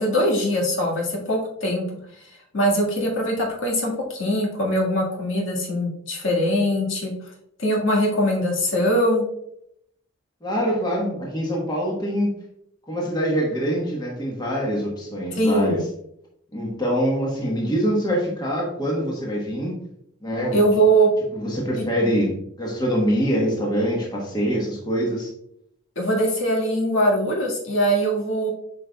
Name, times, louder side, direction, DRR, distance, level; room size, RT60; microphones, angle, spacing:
voice 1, 0.0-1.8 2.5-7.1 7.6-9.2 15.4-15.8 20.5-21.1 26.0-28.5, right 1 dB, 65° left, -2 dB, 1.8 m, -21 dB
voice 2, 10.4-12.4 12.9-15.8 16.5-19.8 20.2-20.6 21.3-25.3, equal, 20° left, -2 dB, 1.2 m, -24 dB
8.2 x 5.2 x 2.3 m, 0.74 s
head